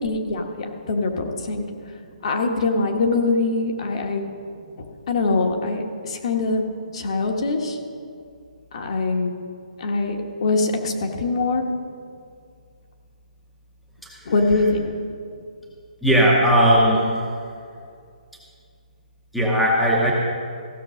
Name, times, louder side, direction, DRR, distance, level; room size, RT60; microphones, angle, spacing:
voice 1, 0.0-1.7 2.2-4.2 5.1-6.6 6.9-7.8 8.7-9.3 9.8-11.6 14.3-14.9, left 3 dB, 45° left, 3 dB, 1.3 m, -23 dB
voice 2, 14.0-14.3 16.0-17.0 19.3-20.1, equal, ahead, -5 dB, 0.8 m, -18 dB
15.0 x 6.1 x 6.2 m, 2.3 s
hypercardioid pair, 170°, 4 cm